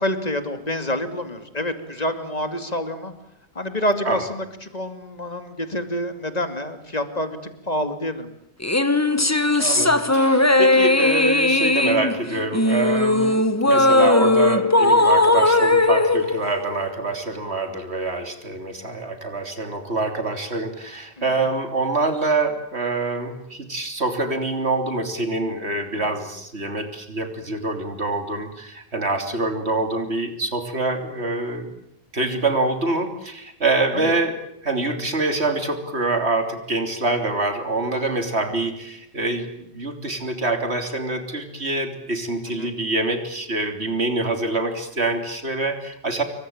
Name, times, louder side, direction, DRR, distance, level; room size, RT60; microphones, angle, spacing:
voice 1, 0.0-3.1 3.5-7.4 7.6-8.3 21.2-21.5 25.9-26.1 33.9-34.1 42.5-42.7, left 1 dB, 35° left, 8 dB, 2.7 m, -27 dB
sound 1, 8.6-17.2, left 2 dB, 15° left, 1.1 m, -18 dB
voice 2, 9.6-31.7 32.1-34.4 34.6-46.2, right 2 dB, 75° right, 6 dB, 3.6 m, -25 dB
27.0 x 23.5 x 8.8 m, 0.81 s
omnidirectional pair, 1.1 m